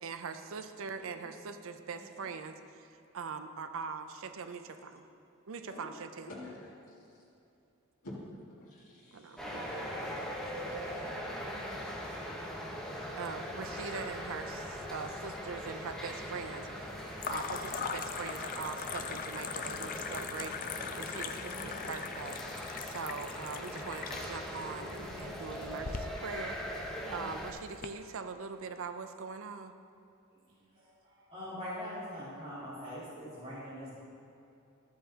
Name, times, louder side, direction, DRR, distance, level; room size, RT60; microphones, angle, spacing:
voice 1, 0.0-5.1 5.5-6.3 9.1-10.2 10.5-11.4 13.2-17.0 17.3-29.7, right 5 dB, 65° right, 9 dB, 0.5 m, -42 dB
voice 2, 1.0-1.5 1.9-2.2 4.8-4.9 5.6-5.9 6.3-7.2 8.0-11.0, left 1 dB, 75° left, -7 dB, 2.1 m, -50 dB
sound 1, 9.4-27.5, equal, 5° left, 1.0 m, -41 dB
sound 2, 14.0-14.8 15.1-15.7 17.2-27.9, left 6 dB, 40° left, 0.4 m, -41 dB
voice 3, 30.7-34.0, left 1 dB, 25° right, -12 dB, 2.4 m, -42 dB
13.5 x 8.6 x 2.9 m, 2.8 s
head